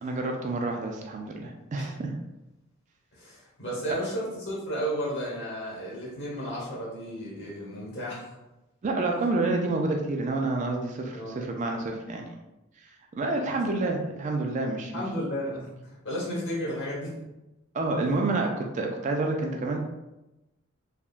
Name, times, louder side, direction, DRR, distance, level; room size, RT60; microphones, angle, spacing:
voice 1, 0.0-2.1 3.9-4.0 8.8-12.3 12.8-15.0 17.7-19.8, right 2 dB, 35° right, 2 dB, 0.3 m, -29 dB
voice 2, 3.1-8.3 11.1-11.3 13.5-13.6 14.9-17.2, equal, 55° left, -5 dB, 1.2 m, -33 dB
3.5 x 2.3 x 2.4 m, 0.96 s
head